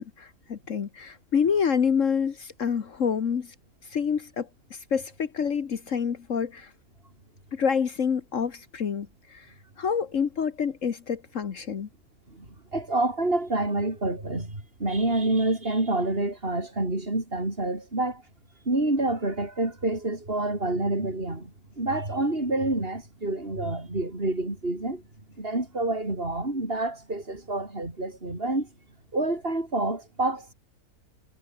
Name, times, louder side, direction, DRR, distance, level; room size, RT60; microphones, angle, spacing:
voice 1, 0.0-3.5 3.8-6.7 7.5-11.9, left 6 dB, 60° left, 1.6 m, -28 dB
voice 2, 12.3-18.2 18.7-25.0 25.4-28.7 29.1-30.5, right 2 dB, 40° right, 5.8 m, -28 dB
omnidirectional pair, 1.5 m